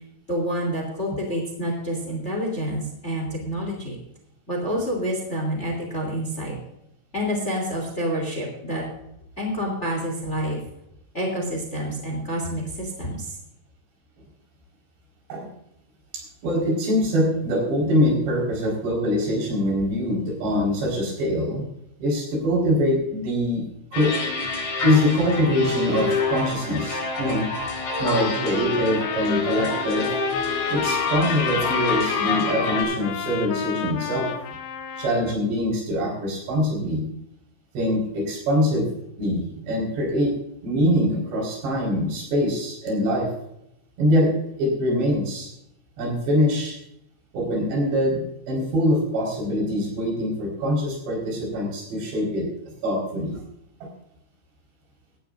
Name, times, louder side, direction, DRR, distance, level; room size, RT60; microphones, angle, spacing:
voice 1, 0.3-4.0 4.5-6.6 7.1-8.8 9.4-10.6 11.1-13.4, equal, 20° left, 1 dB, 2.6 m, -28 dB
voice 2, 16.1-21.6 22.0-23.6 23.9-24.1 24.8-27.5 28.0-30.1 30.7-34.3 35.0-37.0 37.8-38.9 39.2-40.3 40.6-43.3 44.0-44.3 44.6-45.5 46.0-46.8 47.3-48.2 48.5-52.5 52.8-53.4 53.8-53.9, equal, 70° right, 0 dB, 6.9 m, -23 dB
sound 1, 23.9-32.8, left 3 dB, 60° left, 6.3 m, -27 dB
Trumpet, 28.0-35.4, left 9 dB, 90° left, 3.5 m, -31 dB
17.5 x 13.5 x 2.6 m, 0.79 s
omnidirectional pair, 5.2 m